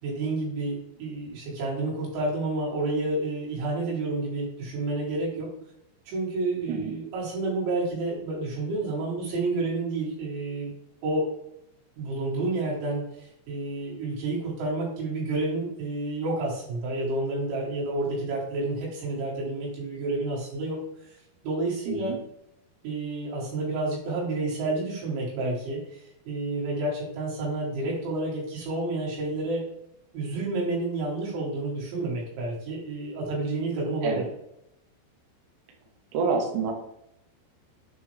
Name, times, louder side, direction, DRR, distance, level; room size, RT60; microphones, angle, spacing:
voice 1, 0.0-5.5 6.1-10.7 11.0-11.3 12.0-21.2 21.4-22.1 22.8-29.6 30.1-34.2, right 2 dB, 85° right, -5 dB, 4.8 m, -30 dB
voice 2, 21.9-22.2 34.0-34.2 36.1-36.7, right 5 dB, 70° right, 1 dB, 2.0 m, -27 dB
8.2 x 4.4 x 3.2 m, 0.79 s
omnidirectional pair, 5.2 m